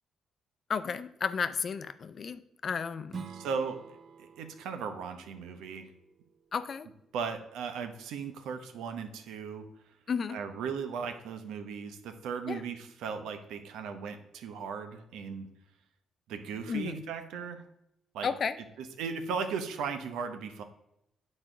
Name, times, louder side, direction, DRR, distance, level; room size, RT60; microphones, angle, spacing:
voice 1, 0.7-3.2 6.5-6.9 10.1-10.4 12.5-12.6 16.7-17.0 18.2-18.6, left 6 dB, 45° left, 12 dB, 0.5 m, -33 dB
Strum, 3.1-8.3, right 7 dB, 55° right, 0.7 m, -50 dB
voice 2, 3.3-3.8 4.2-5.9 7.1-9.7 10.3-15.5 16.3-17.6 18.1-18.3 19.0-20.6, right 6 dB, 85° right, 7 dB, 0.9 m, -37 dB
9.0 x 4.3 x 4.9 m, 0.81 s
cardioid pair, 90°, 0 cm